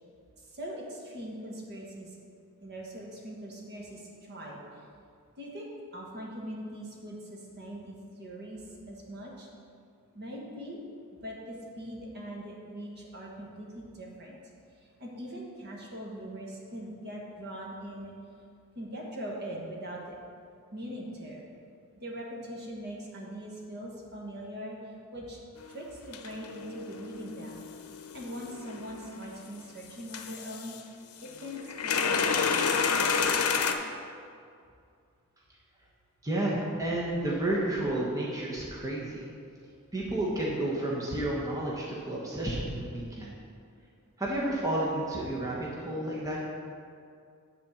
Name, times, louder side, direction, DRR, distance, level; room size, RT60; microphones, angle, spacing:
voice 1, 0.5-2.1 2.6-4.6 5.4-8.6 8.9-9.5 10.1-10.8 11.1-14.4 15.0-18.1 18.7-20.2 20.7-21.4 22.0-24.8 25.1-25.4 25.7-27.6 28.1-30.7 31.4-32.8, equal, 50° right, -2 dB, 1.6 m, -41 dB
sound 1, 25.6-25.7 26.1-29.5 30.1-30.8 31.3-33.7, left 5 dB, 75° left, 0.7 m, -30 dB
voice 2, 36.2-39.2 39.9-43.4 44.2-46.4, right 1 dB, 15° right, -5 dB, 1.1 m, -31 dB
9.4 x 4.3 x 7.1 m, 2.3 s
head